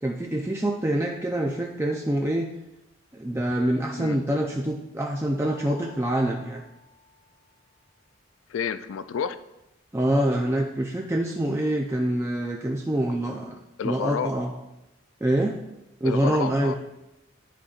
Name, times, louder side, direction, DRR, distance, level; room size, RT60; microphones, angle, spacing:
voice 1, 0.0-2.5 3.1-6.6 9.9-13.6 13.8-14.5 15.2-15.6 16.0-16.8, right 1 dB, 10° right, 0 dB, 0.4 m, -25 dB
Mallet percussion, 5.4-7.9, left 2 dB, 70° right, 1.5 m, -52 dB
voice 2, 8.5-9.4 13.8-14.3 16.0-16.8, left 7 dB, 75° left, 11 dB, 0.3 m, -30 dB
12.5 x 4.3 x 2.4 m, 0.92 s
head